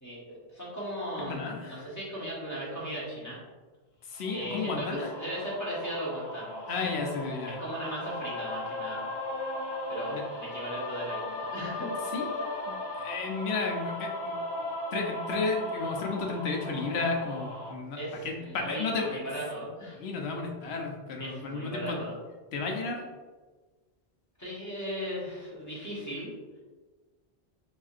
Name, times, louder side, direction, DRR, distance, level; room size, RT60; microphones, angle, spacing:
voice 1, 0.0-3.4 4.3-6.5 6.8-7.0 7.5-9.0 9.9-11.9 12.4-12.5 18.0-20.0 21.2-22.1 24.4-26.3, equal, 15° left, -7 dB, 1.2 m, -37 dB
voice 2, 1.3-1.8 4.1-5.1 6.7-7.6 10.1-10.2 12.1-14.4 14.9-18.0 18.2-19.1 20.0-22.0 22.5-23.1, left 4 dB, 85° left, 2 dB, 0.9 m, -33 dB
sound 1, 4.2-17.7, left 1 dB, 40° left, 0.4 m, -37 dB
4.8 x 2.7 x 2.5 m, 1.3 s
omnidirectional pair, 1.1 m